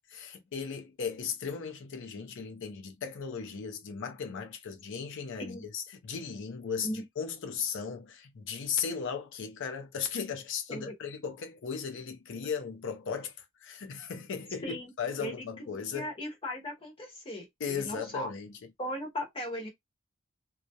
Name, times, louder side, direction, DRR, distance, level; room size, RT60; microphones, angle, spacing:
voice 1, 0.1-6.9 7.2-16.1 17.6-18.5, left 6 dB, 60° left, 0.5 m, -36 dB
voice 2, 15.2-18.3 18.8-19.7, left 1 dB, 25° left, 0.8 m, -38 dB
2.3 x 2.0 x 2.7 m
head